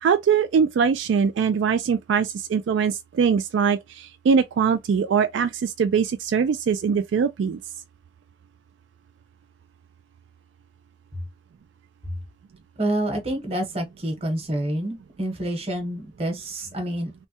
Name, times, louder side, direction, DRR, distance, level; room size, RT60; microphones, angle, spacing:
voice 1, 0.0-7.6, right 6 dB, 80° right, 0.3 m, -22 dB
voice 2, 12.8-17.1, right 1 dB, 30° right, 1.0 m, -28 dB
3.2 x 2.1 x 2.7 m
head